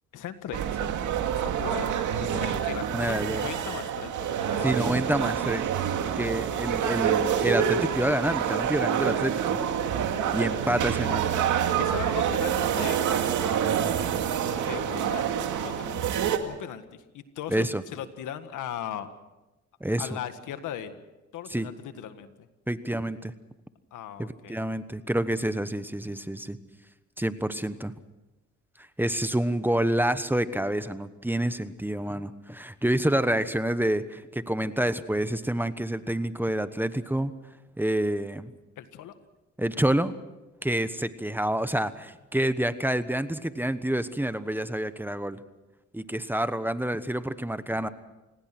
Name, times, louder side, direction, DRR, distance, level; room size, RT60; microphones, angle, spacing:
voice 1, 0.1-0.9 1.3-4.7 11.8-13.0 14.4-15.2 15.5-16.1 16.4-19.1 20.0-21.0 21.3-22.3 23.9-24.6 38.8-39.2, left 10 dB, 85° left, 10 dB, 1.8 m, -38 dB
sound 1, 0.5-16.4, right 8 dB, 80° right, 2.2 m, -27 dB
voice 2, 2.9-3.5 4.6-5.7 6.2-9.6 10.3-11.3 17.5-17.8 19.8-20.1 21.5-21.7 22.7-23.3 24.2-26.6 27.2-27.9 29.0-37.3 37.8-38.5 39.6-40.2 40.6-45.4 45.9-47.9, right 1 dB, 5° right, 12 dB, 1.1 m, -28 dB
28.0 x 19.5 x 6.1 m, 1.0 s
cardioid pair, 90°, 30 cm